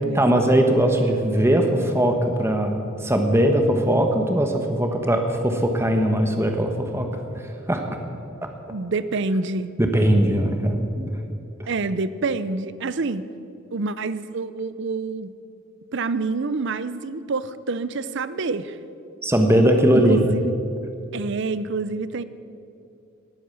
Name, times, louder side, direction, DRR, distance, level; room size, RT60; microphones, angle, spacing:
voice 1, 0.1-7.1 7.7-8.0 9.8-11.1 11.6-11.7 19.2-20.2, right 1 dB, 10° right, 4 dB, 1.2 m, -20 dB
voice 2, 8.7-9.7 11.7-13.3 13.7-15.3 15.9-18.8 19.9-20.5 21.1-22.2, right 3 dB, 60° right, 14 dB, 0.6 m, -27 dB
18.5 x 8.7 x 7.1 m, 2.6 s
head